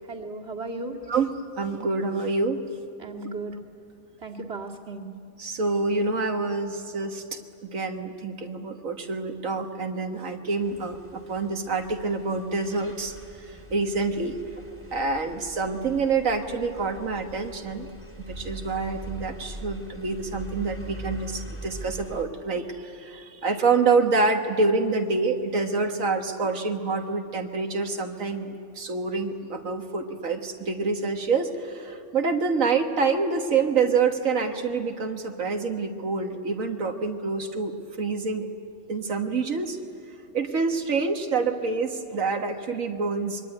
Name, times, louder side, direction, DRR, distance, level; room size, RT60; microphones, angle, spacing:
voice 1, 0.1-1.0 3.0-3.6 4.2-5.1, right 2 dB, 50° right, 1 dB, 2.4 m, -35 dB
voice 2, 1.1-2.6 5.4-7.4 7.7-13.1 13.5-14.4 14.9-17.9 18.2-38.5 38.9-39.8 40.3-43.4, right 4 dB, 80° right, 5 dB, 1.9 m, -27 dB
sound 1, 10.6-22.2, right 1 dB, 10° right, 2.6 m, -42 dB
26.0 x 23.0 x 9.9 m, 2.5 s
omnidirectional pair, 1.4 m